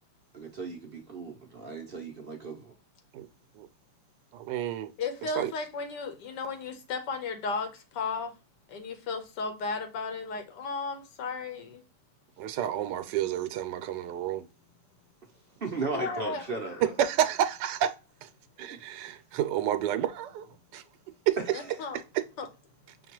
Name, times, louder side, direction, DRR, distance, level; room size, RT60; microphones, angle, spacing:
voice 1, 0.3-2.7 15.6-16.9 18.6-18.8, right 3 dB, 50° right, 0.7 m, -36 dB
voice 2, 4.3-4.9 5.2-5.5 12.4-14.5 16.8-17.9 18.2-18.3 18.6-20.5 20.7-20.8 21.3-21.4 21.9-22.0, right 10 dB, 85° right, 1.2 m, -29 dB
voice 3, 5.0-8.3 8.7-11.8 15.9-16.5 21.5-22.0 22.4-22.5, left 4 dB, 90° left, 1.5 m, -34 dB
5.8 x 2.3 x 2.9 m
omnidirectional pair, 1.8 m